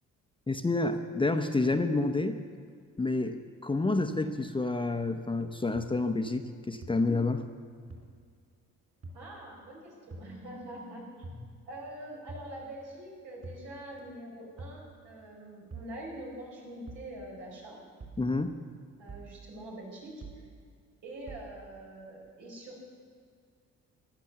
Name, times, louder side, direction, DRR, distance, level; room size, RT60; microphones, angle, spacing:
voice 1, 0.5-2.4 3.0-7.4 18.2-18.6, left 2 dB, 15° left, 7 dB, 0.8 m, -29 dB
sound 1, 5.8-5.9 6.8-6.9 7.9-8.0 9.0-9.2 10.1-10.3 11.2-11.4 12.3-12.5 13.4-13.7 14.6-14.8 15.7-15.9 16.9-17.1 18.0-18.2 19.1-19.3 20.2-20.4 21.3-21.5, right 3 dB, 50° right, 4.4 m, -44 dB
voice 2, 9.1-11.3 11.6-17.8 19.0-20.5 21.0-22.8, right 1 dB, 80° right, -2 dB, 5.0 m, -44 dB
15.0 x 10.5 x 6.9 m, 2.2 s
cardioid pair, 90°, 30 cm